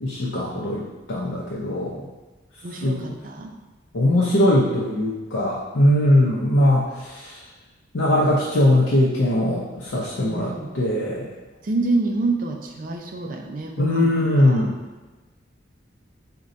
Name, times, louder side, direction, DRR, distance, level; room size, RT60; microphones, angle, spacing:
voice 1, 0.0-2.1 2.8-3.0 3.9-7.4 7.9-11.3 13.8-14.8, left 1 dB, 75° left, -6 dB, 0.6 m, -20 dB
voice 2, 2.6-3.5 6.1-6.4 10.3-10.7 11.6-14.7, right 3 dB, 40° right, 2 dB, 0.4 m, -28 dB
3.7 x 2.2 x 4.0 m, 1.2 s
head